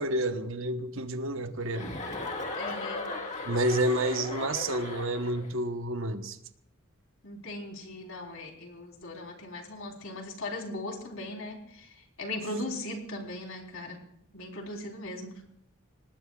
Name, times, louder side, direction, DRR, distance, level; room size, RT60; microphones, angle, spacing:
voice 1, 0.0-2.0 3.4-6.4, right 1 dB, 65° right, 1.1 m, -29 dB
Chuckle chortle, 1.7-5.5, left 2 dB, 35° left, 1.9 m, -37 dB
voice 2, 2.5-3.1 7.2-14.0 14.3-15.4, left 1 dB, 70° left, 3.9 m, -38 dB
25.5 x 19.5 x 2.4 m
head